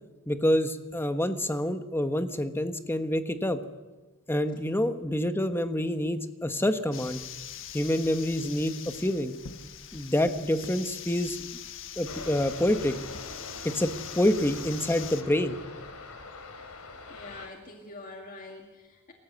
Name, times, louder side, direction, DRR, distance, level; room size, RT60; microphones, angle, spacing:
voice 1, 0.3-3.6 4.3-7.2 7.7-8.7 9.0-9.3 9.9-11.4 12.0-12.9 13.7-15.6, left 1 dB, 10° left, 9 dB, 1.1 m, -27 dB
sound 1, 6.9-15.2, left 9 dB, 60° left, 1.4 m, -43 dB
sound 2, 12.1-17.5, left 3 dB, 75° left, 3.5 m, -43 dB
voice 2, 17.1-19.1, left 2 dB, 40° left, 2 dB, 2.1 m, -45 dB
27.5 x 14.5 x 8.1 m, 1.2 s
head